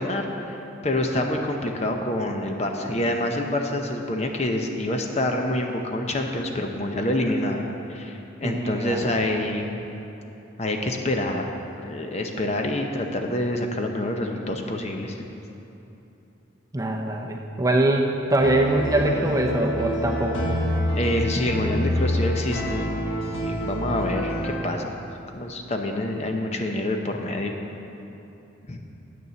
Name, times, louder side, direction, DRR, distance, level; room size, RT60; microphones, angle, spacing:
voice 1, 0.0-9.7 10.6-11.4 11.8-15.2 20.9-22.8 23.4-24.9 25.3-27.5 28.7-28.8, left 1 dB, 35° left, 3 dB, 0.7 m, -27 dB
voice 2, 8.4-9.1 16.7-20.6, right 1 dB, 15° right, 1 dB, 0.6 m, -23 dB
sound 1, 18.4-24.6, left 1 dB, 85° left, 1.5 m, -27 dB
8.5 x 6.8 x 6.9 m, 3.0 s
head